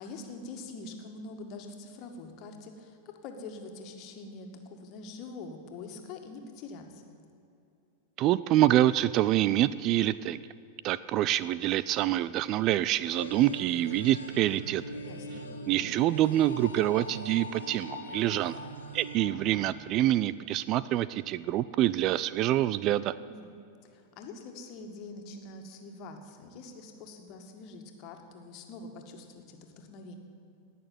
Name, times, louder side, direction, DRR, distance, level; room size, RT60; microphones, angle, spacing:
voice 1, 0.0-7.1 15.0-15.4 23.2-23.5 23.9-30.2, left 3 dB, 40° left, 4 dB, 2.0 m, -44 dB
voice 2, 8.2-10.4 10.8-14.8 15.7-18.6 18.9-23.1, right 13 dB, 35° right, 17 dB, 0.3 m, -26 dB
sound 1, 13.1-20.1, equal, 75° left, 1.6 m, -42 dB
18.5 x 6.8 x 9.7 m, 2.7 s
figure-of-eight pair, 90°, 0 cm